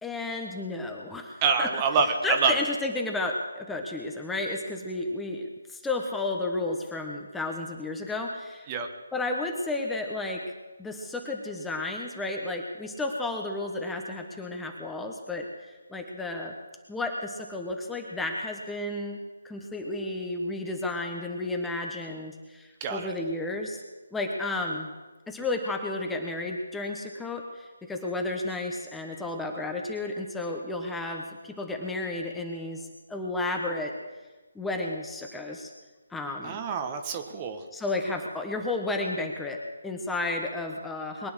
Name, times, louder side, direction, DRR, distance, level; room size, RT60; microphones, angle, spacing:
voice 1, 0.0-1.7 2.2-8.7 9.1-10.4 10.8-16.5 16.9-19.2 19.4-23.8 24.1-24.9 25.3-33.9 34.5-35.7 36.1-36.6 37.7-41.3, left 2 dB, 5° left, 2 dB, 1.3 m, -32 dB
voice 2, 1.4-2.1 2.4-2.5 8.7-8.9 22.8-23.1 36.4-37.6, right 5 dB, 25° right, 6 dB, 1.4 m, -26 dB
22.5 x 9.5 x 6.3 m, 1.2 s
figure-of-eight pair, 150°, 0 cm